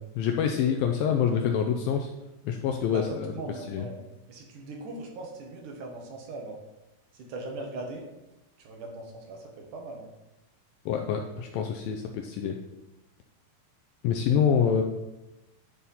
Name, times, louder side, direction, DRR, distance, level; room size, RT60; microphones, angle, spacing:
voice 1, 0.2-2.1 2.4-3.3 3.7-3.8 10.9-12.6 14.0-14.8, left 7 dB, 90° left, 3 dB, 2.1 m, -26 dB
voice 2, 2.9-4.0 4.3-6.6 7.1-8.1 8.6-10.1, right 2 dB, 60° right, 1 dB, 2.3 m, -39 dB
11.0 x 4.3 x 5.4 m, 0.97 s
omnidirectional pair, 4.8 m